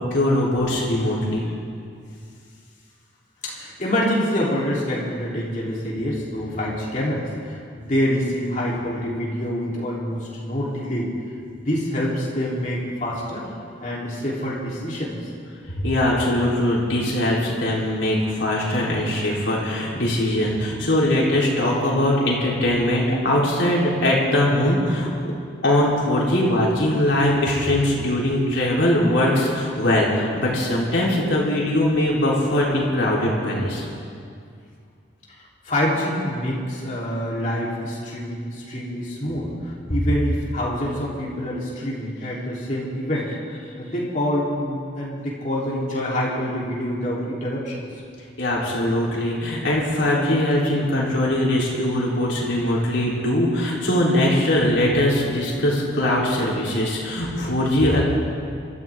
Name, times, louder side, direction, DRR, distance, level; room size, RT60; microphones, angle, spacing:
voice 1, 0.0-1.4 15.8-25.1 25.6-33.8 48.4-58.0, left 1 dB, 70° left, -5 dB, 3.8 m, -21 dB
voice 2, 3.4-11.1 11.5-13.4 13.8-15.2 35.3-47.8, equal, 40° left, -6 dB, 3.5 m, -26 dB
26.5 x 13.5 x 3.7 m, 2.3 s
head